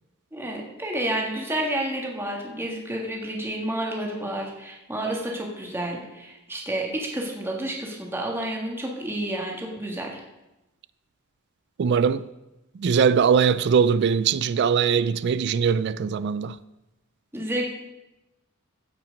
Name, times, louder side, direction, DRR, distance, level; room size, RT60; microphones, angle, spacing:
voice 1, 0.3-10.2 17.3-17.7, right 1 dB, 10° right, 1.6 m, -30 dB
voice 2, 11.8-12.2 12.8-16.5, right 6 dB, 55° right, 0.3 m, -21 dB
16.0 x 5.8 x 5.2 m
head